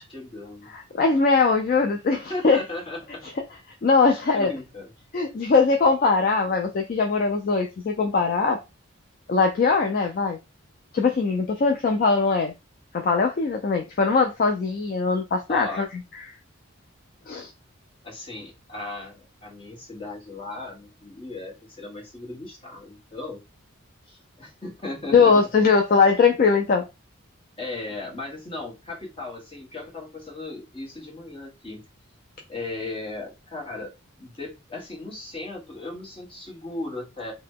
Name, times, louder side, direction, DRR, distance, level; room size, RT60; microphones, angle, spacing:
voice 1, 0.0-0.7 2.1-3.3 4.1-4.9 15.5-15.9 18.0-23.4 24.1-25.4 27.6-31.8 32.5-37.3, left 2 dB, 25° left, 1.0 m, -36 dB
voice 2, 0.7-2.2 2.4-2.6 3.8-4.5 5.1-8.6 9.3-10.4 10.9-12.5 12.9-15.9 17.3-17.5 25.1-26.8, left 4 dB, 40° left, 0.3 m, -21 dB
2.8 x 2.1 x 3.5 m
head